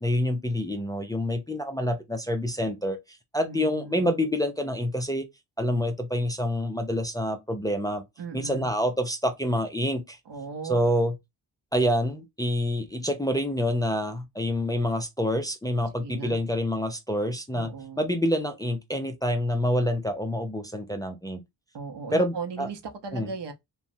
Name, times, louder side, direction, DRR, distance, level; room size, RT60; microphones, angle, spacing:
voice 1, 0.0-5.2 5.6-8.0 8.3-10.2 10.7-11.1 11.7-17.7 18.0-21.4 22.1-22.3 22.6-22.7 23.1-23.3, equal, 10° left, 0.4 m, -27 dB
voice 2, 3.5-4.1 8.2-8.7 10.3-10.8 16.0-16.4 17.5-18.1 21.7-23.5, right 4 dB, 70° right, 0.8 m, -37 dB
3.0 x 2.2 x 2.6 m
wide cardioid pair, 105°, 43 cm